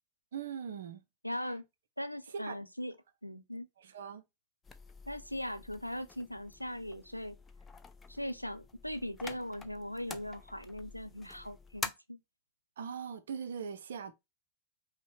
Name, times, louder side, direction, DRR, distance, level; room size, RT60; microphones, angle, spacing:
voice 1, 0.3-1.0 2.3-2.6 3.8-4.2 12.8-14.1, right 7 dB, 65° right, 0.6 m, -40 dB
voice 2, 1.2-1.6 2.0-2.9 3.2-3.7 5.1-7.4 8.1-12.2, left 1 dB, 90° left, 0.5 m, -39 dB
sound 1, 4.6-11.9, left 4 dB, 15° left, 0.5 m, -47 dB
5.4 x 2.2 x 4.2 m
figure-of-eight pair, 90°, 0 cm